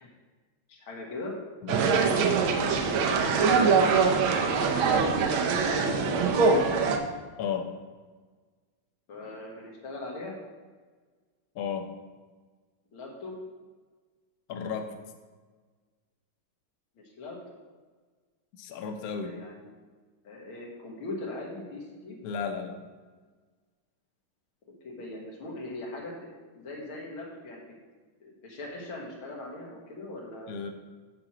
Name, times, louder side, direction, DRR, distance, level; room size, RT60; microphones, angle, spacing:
voice 1, 0.7-1.4 4.3-6.2 9.1-10.4 12.9-13.3 17.0-17.4 19.2-19.7 20.2-22.2 24.8-26.1 26.5-27.6 28.2-30.5, left 2 dB, 85° left, -1 dB, 2.4 m, -40 dB
sound 1, 1.7-7.0, right 5 dB, 90° right, 1.6 m, -23 dB
voice 2, 7.4-7.7 11.5-11.9 14.5-14.9 18.6-19.4 22.2-22.8 30.5-30.7, left 6 dB, 65° left, 5 dB, 0.9 m, -33 dB
7.8 x 4.3 x 6.1 m, 1.4 s
omnidirectional pair, 2.2 m